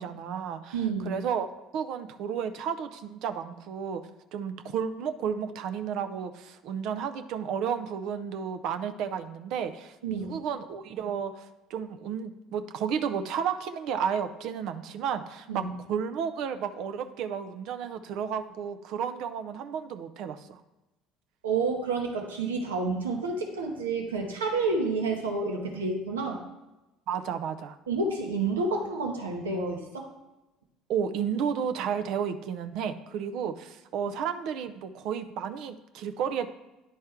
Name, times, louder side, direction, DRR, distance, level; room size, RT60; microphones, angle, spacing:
voice 1, 0.0-1.5 1.7-4.0 4.3-20.6 27.1-27.8 30.9-36.5, right 7 dB, 60° right, 9 dB, 0.5 m, -32 dB
voice 2, 0.7-1.2 10.0-10.3 15.5-15.7 21.4-26.4 27.9-30.1, right 3 dB, 85° right, 1 dB, 1.0 m, -29 dB
9.8 x 4.2 x 3.5 m, 1.0 s
hypercardioid pair, 60°, 0 cm